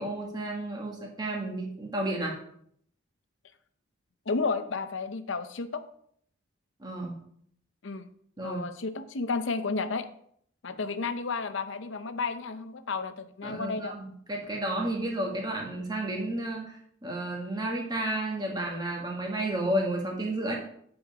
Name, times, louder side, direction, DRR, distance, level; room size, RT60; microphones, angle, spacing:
voice 1, 0.0-2.4 6.8-7.2 8.4-8.7 13.4-20.6, right 1 dB, 20° right, 0 dB, 1.6 m, -32 dB
voice 2, 4.3-5.8 7.8-8.1 8.4-10.1 10.6-13.9, left 4 dB, 60° left, 11 dB, 0.6 m, -32 dB
8.0 x 5.1 x 4.8 m, 0.66 s
head